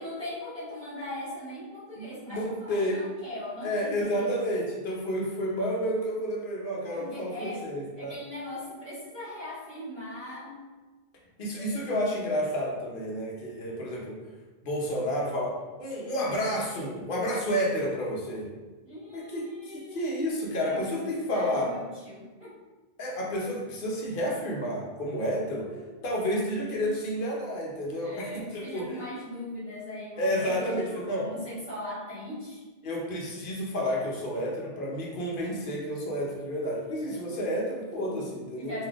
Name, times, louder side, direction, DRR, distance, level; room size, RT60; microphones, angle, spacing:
voice 1, 0.0-4.4 6.9-7.6 7.9-10.6 11.6-11.9 16.1-16.2 18.8-20.1 20.7-22.6 25.5-26.0 28.0-32.6 37.0-38.9, left 1 dB, 25° left, -13 dB, 1.3 m, -40 dB
voice 2, 2.0-3.0 3.6-8.2 11.4-14.1 14.6-18.5 19.1-21.7 23.0-25.7 26.0-29.0 30.2-31.2 32.8-38.7, equal, 55° left, -3 dB, 0.8 m, -30 dB
3.5 x 2.5 x 2.4 m, 1.2 s
omnidirectional pair, 1.1 m